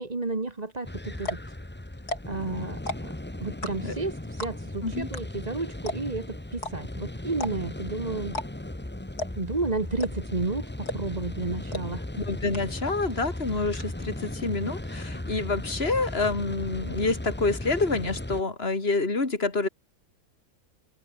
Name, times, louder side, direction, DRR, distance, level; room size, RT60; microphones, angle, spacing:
voice 1, 0.0-1.4 2.3-3.1 3.4-8.4 9.3-12.1, right 3 dB, 25° right, 1.8 m, -32 dB
sound 1, 0.7-0.8 1.2-1.5 2.0-2.4 2.7-3.2 3.6-4.0 4.4-4.7 5.1-5.2 5.5-5.6 5.9-6.2 6.6-6.7 7.3-7.8 8.3-8.5 8.7-8.8 9.2-9.5 10.0-10.4 10.9-11.2 11.7-11.8 12.2-12.3 12.5-13.0 13.2-13.8, left 2 dB, 75° left, 8.5 m, -33 dB
sound 2, 0.8-18.4, left 1 dB, 5° left, 1.1 m, -37 dB
voice 2, 12.2-19.7, left 3 dB, 40° left, 3.8 m, -27 dB
omnidirectional pair, 1.7 m